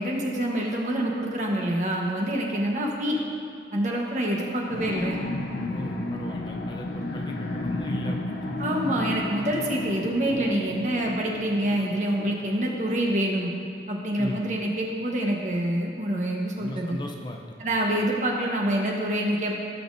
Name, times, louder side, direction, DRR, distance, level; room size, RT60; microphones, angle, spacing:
voice 1, 0.0-3.2 3.7-5.2 8.6-13.5 13.9-17.0 17.6-19.6, right 1 dB, 45° right, -1 dB, 1.2 m, -26 dB
sound 1, 4.7-12.9, left 1 dB, 70° left, 0.7 m, -33 dB
voice 2, 5.7-8.9 14.2-14.4 16.6-18.1, left 1 dB, 25° left, 1 dB, 0.5 m, -38 dB
17.5 x 5.9 x 2.7 m, 2.4 s
head